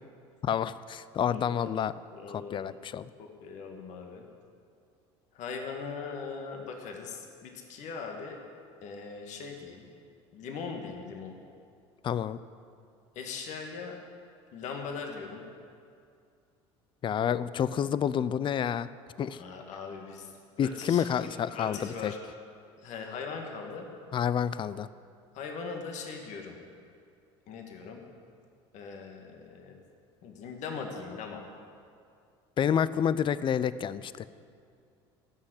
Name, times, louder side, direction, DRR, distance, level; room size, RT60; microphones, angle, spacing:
voice 1, 0.4-1.9 2.3-3.1 12.0-12.4 17.0-18.9 19.2-19.4 20.6-22.1 24.1-24.9 32.6-34.3, left 8 dB, 35° left, 16 dB, 0.5 m, -29 dB
voice 2, 1.2-1.8 2.1-2.6 3.2-4.2 5.3-8.4 8.8-9.8 10.3-11.4 13.2-14.0 14.5-15.4 19.3-20.3 20.6-21.0 21.5-22.2 22.8-23.9 25.3-26.6 27.5-28.0 28.7-29.7 30.2-31.4, left 5 dB, 60° left, 2 dB, 1.8 m, -40 dB
14.0 x 6.6 x 9.8 m, 2.4 s
hypercardioid pair, 80°, 14 cm